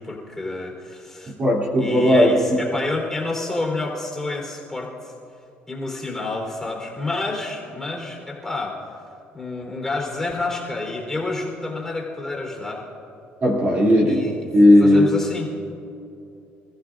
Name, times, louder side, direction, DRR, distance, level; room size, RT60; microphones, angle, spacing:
voice 1, 0.0-1.3 1.8-5.1 5.7-8.8 9.3-12.8 14.1-14.4 14.8-15.5, left 2 dB, 10° left, -2 dB, 3.9 m, -29 dB
voice 2, 1.3-2.6 13.4-15.1, left 1 dB, 35° right, -3 dB, 2.9 m, -16 dB
27.0 x 15.0 x 2.6 m, 2.7 s
cardioid pair, 115°, 4 cm